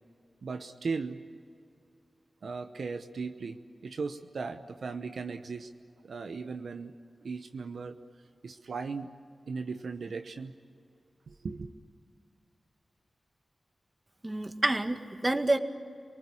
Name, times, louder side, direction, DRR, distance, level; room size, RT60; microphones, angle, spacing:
voice 1, 0.4-1.2 2.4-5.7 6.0-6.9 7.2-8.0 8.4-9.1 9.5-10.5 11.3-11.7, right 4 dB, 80° right, 7 dB, 0.9 m, -37 dB
voice 2, 14.2-15.6, right 2 dB, 30° right, 6 dB, 2.0 m, -28 dB
28.5 x 19.5 x 8.6 m, 2.3 s
cardioid pair, 50°, 0 cm